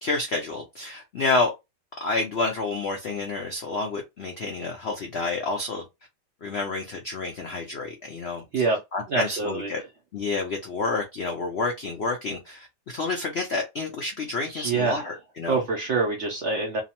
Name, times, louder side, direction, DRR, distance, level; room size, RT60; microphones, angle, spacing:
voice 1, 0.0-1.5 2.0-5.8 6.4-8.6 8.9-9.8 10.1-15.6, left 3 dB, 85° left, 0.5 m, -29 dB
voice 2, 9.1-9.7 14.4-15.1 15.5-16.8, right 4 dB, 75° right, 0.6 m, -26 dB
2.9 x 2.0 x 2.8 m
omnidirectional pair, 1.9 m